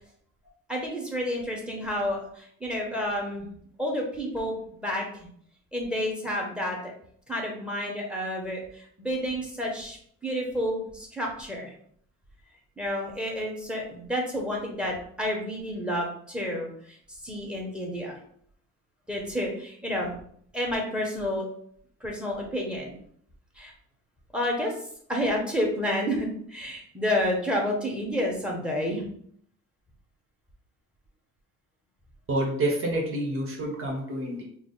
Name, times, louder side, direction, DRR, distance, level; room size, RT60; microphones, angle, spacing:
voice 1, 0.7-3.5 3.8-5.3 5.7-6.9 7.3-11.7 12.8-18.2 19.1-20.1 20.5-21.5 22.0-22.9 23.5-23.7 24.3-24.7 25.1-29.0, equal, 5° right, -1 dB, 1.3 m, -30 dB
voice 2, 32.3-34.4, right 1 dB, 45° right, -1 dB, 1.3 m, -28 dB
4.7 x 2.1 x 4.0 m, 0.63 s
cardioid pair, 90°, 30 cm